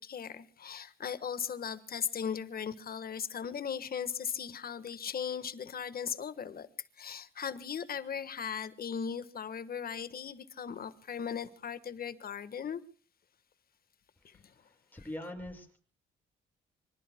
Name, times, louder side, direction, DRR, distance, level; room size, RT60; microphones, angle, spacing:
voice 1, 0.0-6.7 7.0-12.8 14.2-14.4, left 7 dB, 50° left, 1.4 m, -38 dB
voice 2, 14.3-15.8, left 1 dB, 10° left, 6.6 m, -44 dB
25.5 x 25.0 x 2.2 m
cardioid pair, 90°, 20 cm